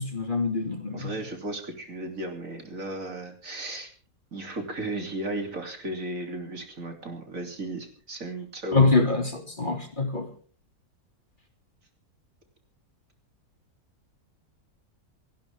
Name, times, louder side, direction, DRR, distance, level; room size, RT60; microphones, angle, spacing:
voice 1, 0.0-1.1 8.7-10.3, left 3 dB, 30° left, 4 dB, 2.6 m, -24 dB
voice 2, 0.9-3.9 4.3-8.8, right 2 dB, 60° right, 4 dB, 3.5 m, -35 dB
28.5 x 11.5 x 3.5 m, 0.42 s
omnidirectional pair, 1.6 m